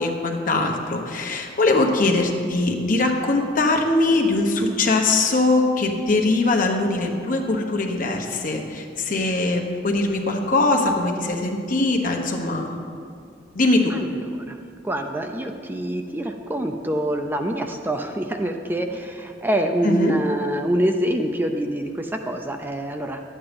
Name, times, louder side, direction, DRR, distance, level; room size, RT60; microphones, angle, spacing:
voice 1, 0.0-12.9 13.5-14.0 19.8-20.2, left 2 dB, 50° left, 2 dB, 1.2 m, -21 dB
voice 2, 13.9-14.6 14.8-23.2, right 1 dB, 10° right, 5 dB, 0.5 m, -25 dB
11.5 x 8.7 x 5.2 m, 2.3 s
head